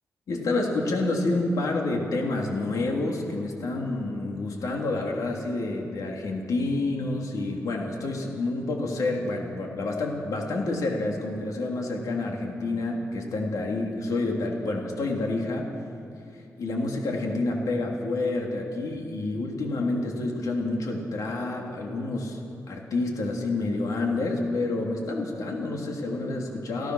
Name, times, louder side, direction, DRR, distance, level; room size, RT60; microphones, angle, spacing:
voice 1, 0.3-15.7 16.6-22.4 22.7-26.9, left 2 dB, 85° left, 0 dB, 3.2 m, -28 dB
29.0 x 16.5 x 6.4 m, 2.5 s
wide cardioid pair, 135°, 6 cm